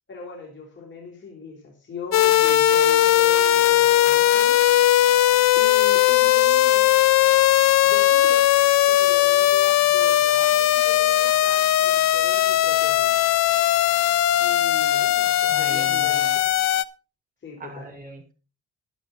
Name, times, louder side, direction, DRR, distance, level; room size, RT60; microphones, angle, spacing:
voice 1, 0.1-4.6 5.5-6.9 7.8-8.5 8.8-13.2 14.4-16.5 17.4-17.9, left 5 dB, 40° left, -2 dB, 3.8 m, -40 dB
sound 1, 2.1-16.8, left 13 dB, 60° left, 0.6 m, -18 dB
voice 2, 15.5-16.4 17.6-18.3, right 3 dB, 30° right, 2 dB, 4.8 m, -39 dB
11.5 x 11.0 x 4.1 m, 0.34 s
cardioid pair, 90°, 30 cm